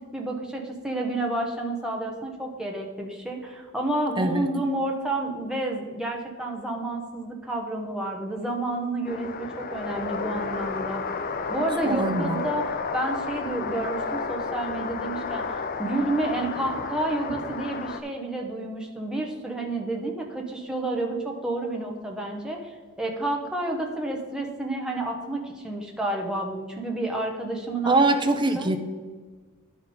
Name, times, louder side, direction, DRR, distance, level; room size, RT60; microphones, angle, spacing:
voice 1, 0.0-11.0 11.5-12.6 12.9-15.5 15.8-27.9 28.6-28.7, right 2 dB, 5° right, 0 dB, 1.0 m, -30 dB
voice 2, 4.2-4.5 11.8-12.4 27.9-28.8, right 2 dB, 20° right, 6 dB, 0.5 m, -23 dB
sound 1, 9.0-18.0, left 4 dB, 40° left, 0.5 m, -32 dB
11.0 x 3.9 x 5.0 m, 1.4 s
head